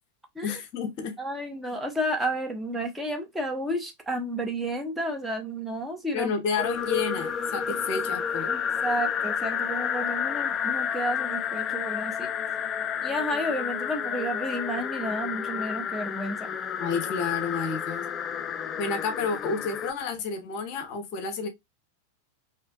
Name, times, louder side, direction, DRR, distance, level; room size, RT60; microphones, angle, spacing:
voice 1, 0.4-1.1 6.1-8.5 16.8-18.0 18.8-21.5, left 5 dB, 45° left, 0.8 m, -30 dB
voice 2, 1.2-6.3 6.6-6.7 7.7-7.8 8.5-12.3 13.0-16.5, equal, 5° right, 0.8 m, -31 dB
sound 1, 6.6-19.9, left 7 dB, 25° left, 0.3 m, -30 dB
4.4 x 2.7 x 2.2 m
figure-of-eight pair, 90°, 0 cm